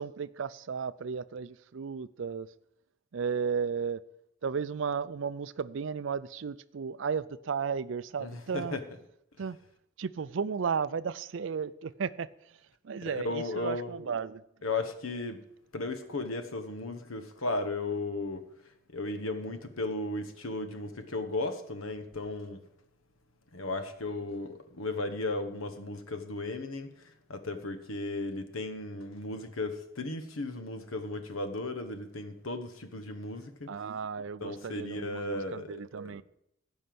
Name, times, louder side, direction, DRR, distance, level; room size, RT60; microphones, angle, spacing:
voice 1, 0.0-2.5 3.1-4.0 4.4-8.8 9.4-9.6 10.0-12.3 12.8-14.4 33.7-36.2, right 6 dB, 65° right, 0.4 m, -34 dB
voice 2, 8.2-8.8 13.0-14.1 14.6-15.4 15.7-18.4 18.9-22.6 23.5-33.7 34.4-35.8 36.0-36.2, left 2 dB, 90° left, 1.2 m, -35 dB
15.5 x 5.5 x 7.8 m
head